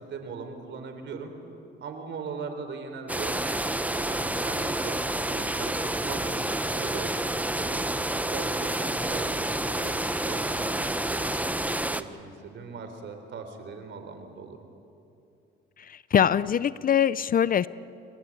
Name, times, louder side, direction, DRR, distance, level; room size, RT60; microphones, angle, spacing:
voice 1, 0.0-1.3 1.8-3.4 3.9-7.1 7.4-7.9 8.3-10.0 10.2-11.3 11.7-14.6, right 5 dB, 65° right, 7 dB, 3.9 m, -40 dB
sound 1, 3.1-12.0, right 1 dB, 5° right, 1.0 m, -29 dB
voice 2, 15.9-17.7, left 8 dB, 45° left, 18 dB, 0.6 m, -23 dB
28.0 x 20.5 x 8.6 m, 2.8 s
cardioid pair, 90°, 20 cm